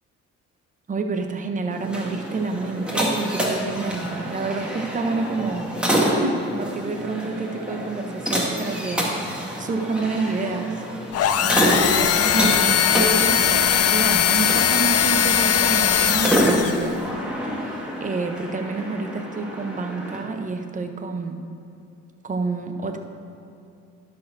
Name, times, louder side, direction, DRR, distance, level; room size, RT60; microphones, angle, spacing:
voice 1, 0.9-10.8 11.4-17.0 17.6-21.4 22.2-23.0, right 3 dB, 25° right, 5 dB, 0.8 m, -28 dB
sound 1, 1.7-20.2, equal, 5° right, 1.7 m, -27 dB
sound 2, 11.1-16.9, left 9 dB, 55° left, 0.5 m, -20 dB
11.5 x 4.4 x 6.2 m, 2.6 s
cardioid pair, 90°, 30 cm